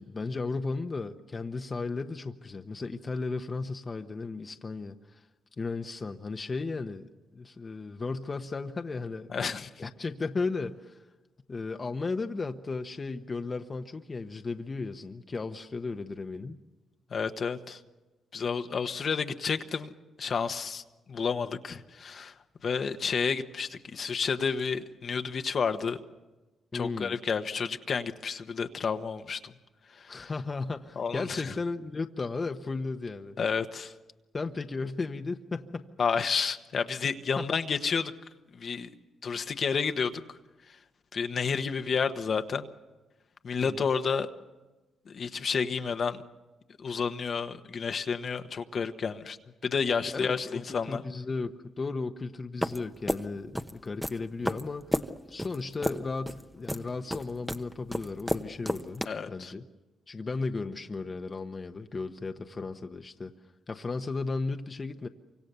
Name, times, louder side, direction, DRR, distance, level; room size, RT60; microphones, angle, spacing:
voice 1, 0.0-5.3 5.6-9.3 9.8-11.0 11.5-16.6 26.7-27.2 30.1-33.4 34.3-35.9 37.4-37.5 43.6-43.9 50.1-55.0 55.3-59.7 60.1-63.3 63.7-65.1, left 3 dB, 40° left, 6 dB, 1.1 m, -35 dB
voice 2, 9.3-9.7 17.1-17.8 18.3-19.9 20.2-20.8 21.1-22.3 22.6-26.0 26.7-29.5 29.9-30.3 31.0-31.5 33.4-33.9 36.0-38.1 38.5-38.9 39.2-40.4 41.1-42.7 43.4-44.3 45.1-46.2 46.8-49.4 49.6-51.0 59.1-59.5, left 5 dB, 55° left, 7 dB, 1.2 m, -30 dB
sound 1, 52.6-59.1, equal, ahead, 1.0 m, -32 dB
28.0 x 25.0 x 6.9 m, 1.1 s
cardioid pair, 65°, 0 cm